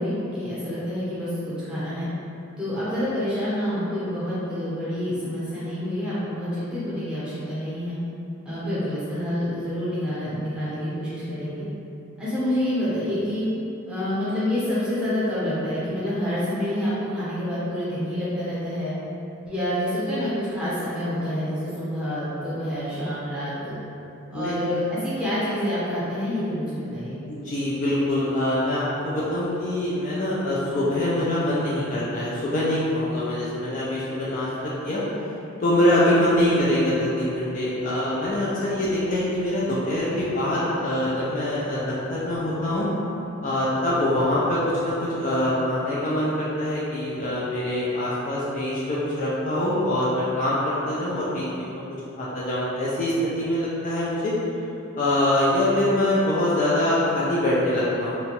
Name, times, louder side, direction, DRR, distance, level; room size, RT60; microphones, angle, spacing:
voice 1, 0.0-2.1 2.6-8.0 8.4-11.6 12.2-13.5 13.9-18.9 19.4-23.7 24.3-27.2, left 1 dB, 5° right, -12 dB, 0.8 m, -27 dB
voice 2, 27.3-35.0 35.6-42.9 43.4-51.4 51.7-51.8 52.2-54.3 55.0-58.1, left 1 dB, 35° left, -8 dB, 0.3 m, -24 dB
2.9 x 2.2 x 2.8 m, 2.9 s
head